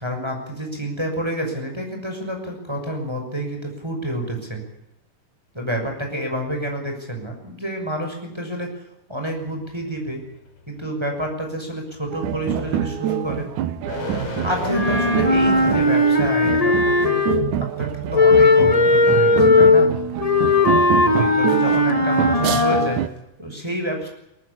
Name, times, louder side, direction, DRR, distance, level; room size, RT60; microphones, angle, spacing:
voice 1, 0.0-4.6 5.5-8.8 9.1-10.2 10.7-13.5 14.4-17.2 17.8-19.9 21.0-23.0 23.4-24.1, right 1 dB, 5° right, 2 dB, 6.2 m, -28 dB
sound 1, 9.3-16.3, left 3 dB, 45° left, 5.1 m, -34 dB
sound 2, 12.1-23.1, right 12 dB, 75° right, 2.4 m, -26 dB
Wind instrument woodwind instrument, 14.7-17.6 18.1-23.0, left 3 dB, 30° left, 0.6 m, -17 dB
22.0 x 18.5 x 8.5 m, 0.82 s
omnidirectional pair, 3.7 m